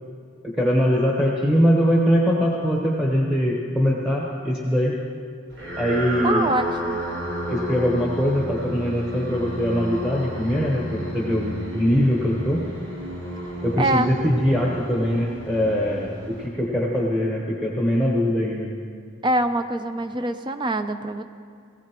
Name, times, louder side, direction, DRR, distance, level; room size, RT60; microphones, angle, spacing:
voice 1, 0.4-4.9 5.8-6.5 7.5-12.6 13.6-18.7, equal, 5° right, -3 dB, 1.1 m, -22 dB
sound 1, 5.5-17.0, equal, 70° right, 4.2 m, -32 dB
voice 2, 6.2-7.0 13.4-13.5 13.8-14.1 19.2-21.2, right 1 dB, 20° right, 8 dB, 0.5 m, -24 dB
18.5 x 16.0 x 3.0 m, 2.3 s
head